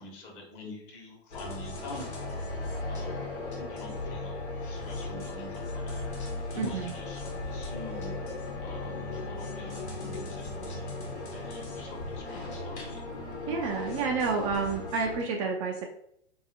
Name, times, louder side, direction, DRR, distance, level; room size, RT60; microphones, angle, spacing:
voice 1, 0.0-3.3 3.6-8.2 8.6-13.0, left 1 dB, 35° left, 0 dB, 1.1 m, -45 dB
sound 1, 1.3-15.2, left 2 dB, 80° left, 1.2 m, -37 dB
voice 2, 6.6-6.9 13.5-15.9, right 5 dB, 30° right, 1 dB, 0.4 m, -29 dB
3.8 x 2.7 x 2.7 m, 0.73 s
hypercardioid pair, 110°, 33 cm